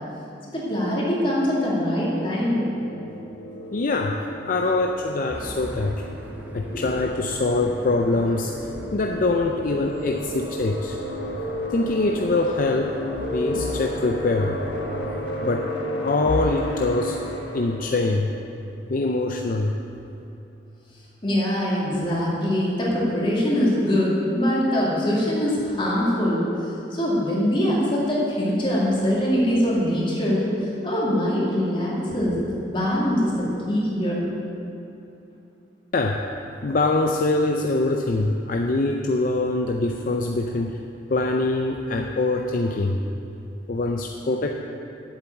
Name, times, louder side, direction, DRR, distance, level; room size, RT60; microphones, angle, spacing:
voice 1, 0.5-2.6 3.1-3.2 6.6-6.9 21.2-34.3, equal, 30° left, -6 dB, 2.6 m, -23 dB
sound 1, 1.6-18.1, left 1 dB, 75° left, 1.4 m, -33 dB
voice 2, 3.7-4.2 4.5-6.0 6.5-8.5 8.9-11.0 11.7-12.9 13.3-14.6 15.4-15.7 16.0-17.2 17.5-18.3 18.9-19.7 35.9-36.2 36.6-40.8 41.1-43.0 43.7-44.6, left 2 dB, 50° left, 2 dB, 0.5 m, -23 dB
sound 2, 5.3-15.3, equal, 10° right, 1.0 m, -42 dB
8.1 x 7.1 x 8.1 m, 2.7 s
head